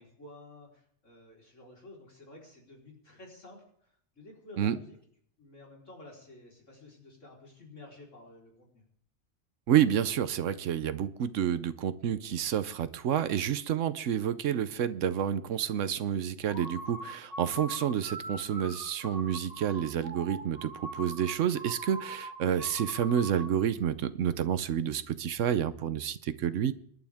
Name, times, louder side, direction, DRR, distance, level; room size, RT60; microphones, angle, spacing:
voice 1, 0.0-5.0 5.4-8.8, left 2 dB, 80° left, -2 dB, 4.5 m, -52 dB
voice 2, 9.7-26.7, right 9 dB, 90° right, 13 dB, 1.1 m, -29 dB
sound 1, 16.4-23.6, right 1 dB, 50° left, 6.4 m, -42 dB
27.0 x 11.5 x 3.6 m, 0.65 s
omnidirectional pair, 1.3 m